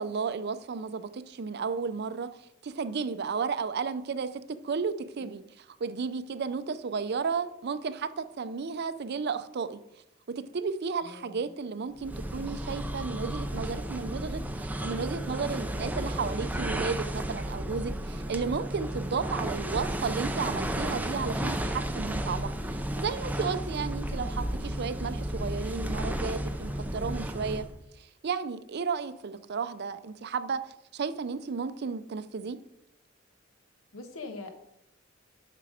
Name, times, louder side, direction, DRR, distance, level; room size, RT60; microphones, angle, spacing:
voice 1, 0.0-2.3 2.6-5.4 5.8-9.8 10.4-27.7 28.0-32.6, right 5 dB, 55° right, 13 dB, 0.5 m, -33 dB
voice 2, 11.0-11.5 33.9-34.5, left 3 dB, 85° left, 6 dB, 1.2 m, -43 dB
sound 1, 12.0-27.8, right 1 dB, 10° right, 0.5 m, -33 dB
7.5 x 5.9 x 4.9 m, 0.81 s
head